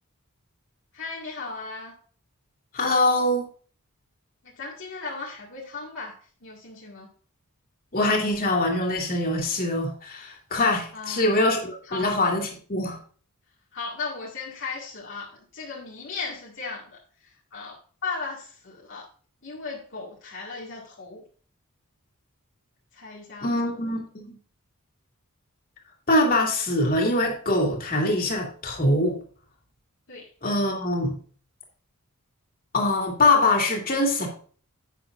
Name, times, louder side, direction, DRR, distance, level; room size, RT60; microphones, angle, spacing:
voice 1, 0.9-2.0 4.4-6.2 6.4-7.1 10.9-11.3 11.9-12.1 13.7-19.1 19.4-21.2 22.9-23.9 30.1-30.3, left 4 dB, 55° left, -3 dB, 1.9 m, -37 dB
voice 2, 2.7-3.5 7.9-13.0 23.4-24.4 26.1-29.2 30.4-31.1 32.7-34.3, left 2 dB, 40° left, 1 dB, 2.5 m, -23 dB
10.5 x 8.5 x 2.5 m, 0.42 s
head